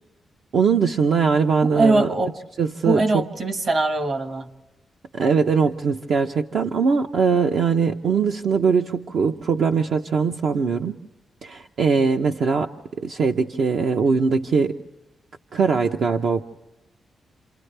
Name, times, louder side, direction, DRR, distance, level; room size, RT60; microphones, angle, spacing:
voice 1, 0.5-2.1 2.6-3.2 5.1-11.0 11.4-12.7 13.0-14.8 15.5-16.4, right 5 dB, 65° right, 4 dB, 0.7 m, -21 dB
voice 2, 1.7-2.4 2.8-4.5, right 2 dB, 40° right, 7 dB, 1.5 m, -21 dB
29.0 x 27.5 x 3.3 m, 1.0 s
wide cardioid pair, 145°, 0 cm